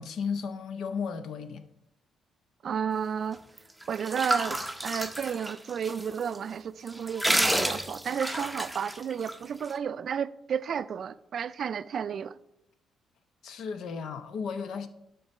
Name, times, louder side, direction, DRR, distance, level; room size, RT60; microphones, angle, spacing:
voice 1, 0.0-1.6 13.4-14.9, left 6 dB, 70° left, 0.8 m, -34 dB
voice 2, 2.6-3.4 3.9-12.4, right 7 dB, 55° right, 0.3 m, -32 dB
sound 1, 3.6-6.0 6.3-6.4 6.9-9.3, right 1 dB, ahead, 0.7 m, -30 dB
11.0 x 3.9 x 5.4 m
cardioid pair, 90°, 0 cm